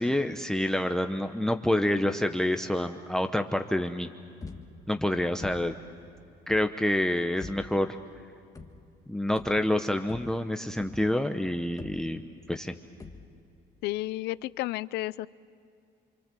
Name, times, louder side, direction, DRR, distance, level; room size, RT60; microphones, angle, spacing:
voice 1, 0.0-4.1 4.9-5.7 6.5-8.0 9.1-12.2 12.5-12.7, left 1 dB, 5° left, 8 dB, 0.8 m, -27 dB
sound 1, 4.4-5.0 5.4-5.9 6.5-6.8 7.4-7.9 8.5-9.0 9.4-11.3 11.8-12.5 13.0-13.6, left 4 dB, 20° left, 1.8 m, -46 dB
voice 2, 13.8-15.3, left 17 dB, 85° left, 18 dB, 0.6 m, -32 dB
28.0 x 24.0 x 7.6 m, 2.5 s
cardioid pair, 110°, 17 cm